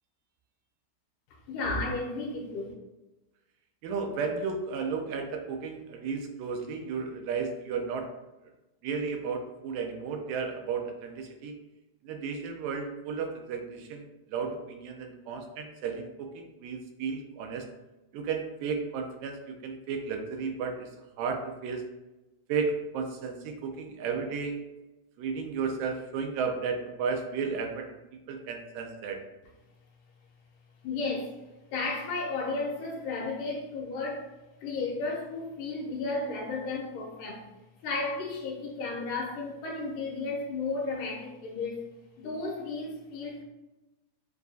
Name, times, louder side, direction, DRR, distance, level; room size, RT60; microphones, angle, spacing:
voice 1, 1.5-2.7 30.8-31.3 31.7-34.3 34.6-37.4 37.8-41.8 42.2-43.4, left 3 dB, 80° left, -1 dB, 2.3 m, -33 dB
voice 2, 3.8-8.1 8.8-11.5 12.0-17.7 18.1-20.9 21.2-21.9 22.5-24.6 25.2-29.2, right 5 dB, 80° right, 4 dB, 2.2 m, -33 dB
7.1 x 2.6 x 2.3 m, 1.0 s
omnidirectional pair, 3.9 m